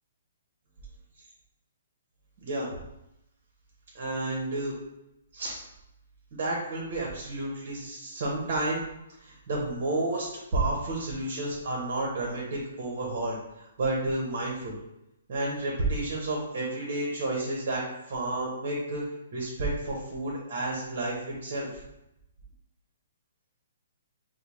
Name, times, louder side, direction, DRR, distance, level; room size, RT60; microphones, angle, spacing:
voice 1, 3.9-4.8 5.3-5.6 6.3-8.8 9.2-14.8 15.3-19.0 19.3-21.8, right 2 dB, 40° right, -3 dB, 0.8 m, -31 dB
4.3 x 2.0 x 3.1 m, 0.88 s
hypercardioid pair, 170°, 0 cm